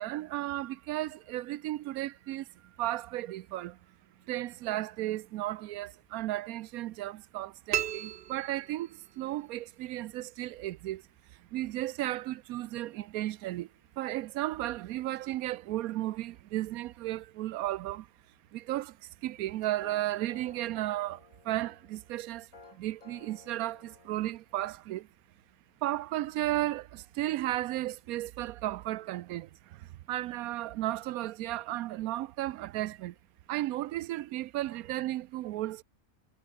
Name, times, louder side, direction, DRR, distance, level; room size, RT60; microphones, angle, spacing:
voice 1, 0.0-2.5 2.8-3.8 4.3-11.0 11.5-13.7 14.0-18.1 18.5-18.9 19.2-22.5 22.7-25.1 25.8-33.1 33.5-35.8, right 15 dB, 85° right, 1.0 m, -34 dB
sound 1, 7.7-9.3, right 11 dB, 60° right, 0.6 m, -35 dB
sound 2, 19.4-24.7, left 3 dB, 70° left, 3.5 m, -56 dB
omnidirectional pair, 1.5 m